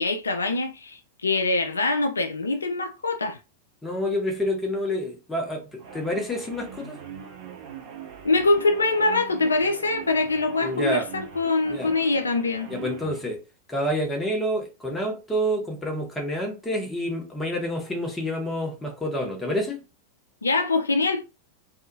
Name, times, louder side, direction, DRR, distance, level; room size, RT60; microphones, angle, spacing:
voice 1, 0.0-3.4 8.2-12.7 20.4-21.2, left 3 dB, 75° left, 0.4 m, -24 dB
voice 2, 3.8-7.0 10.6-11.1 11.7-11.9 12.7-13.4 13.7-19.8, equal, 10° left, 1.0 m, -28 dB
sound 1, 5.8-13.2, right 7 dB, 50° right, 0.9 m, -41 dB
2.6 x 2.3 x 2.6 m
figure-of-eight pair, 90°, 0 cm